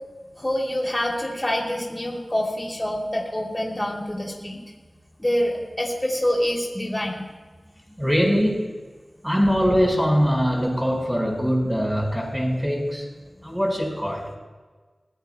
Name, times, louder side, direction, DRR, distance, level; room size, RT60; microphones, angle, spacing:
voice 1, 0.4-4.6 5.2-7.3, left 1 dB, 20° left, -1 dB, 2.8 m, -26 dB
voice 2, 8.0-8.7 9.2-13.0 13.4-14.3, equal, 5° right, 0 dB, 4.7 m, -22 dB
24.0 x 16.5 x 2.2 m, 1.4 s
wide cardioid pair, 55°, 0 cm